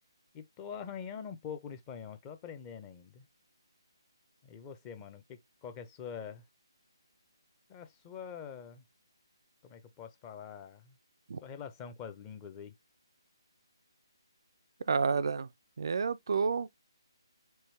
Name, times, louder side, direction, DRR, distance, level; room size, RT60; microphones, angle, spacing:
voice 1, 0.3-3.3 4.4-6.4 7.7-8.8 9.6-11.0 11.4-12.7, left 7 dB, 20° left, 0.6 m, -44 dB
voice 2, 14.9-15.5 15.8-16.7, right 5 dB, 60° right, 0.3 m, -30 dB
4.6 x 2.7 x 3.2 m
figure-of-eight pair, 150°, 3 cm